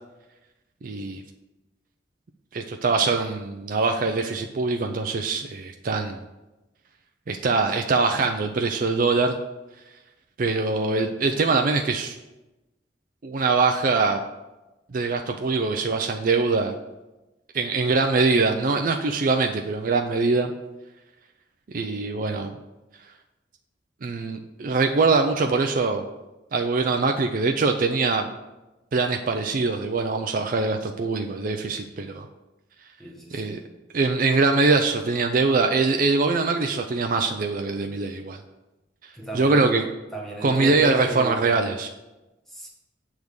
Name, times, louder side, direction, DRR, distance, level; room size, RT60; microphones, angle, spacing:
voice 1, 0.8-1.2 2.5-6.2 7.3-9.3 10.4-12.2 13.2-14.2 14.9-16.7 17.5-20.5 21.7-22.5 24.0-26.0 26.5-28.3 28.9-32.3 33.3-33.6 33.9-38.4 39.3-39.8 40.4-41.9, right 3 dB, 45° right, 4 dB, 0.4 m, -23 dB
voice 2, 33.0-33.6 39.1-39.7 40.1-41.5 42.5-42.7, right 1 dB, ahead, -2 dB, 1.3 m, -34 dB
7.8 x 3.6 x 6.6 m, 1.0 s
head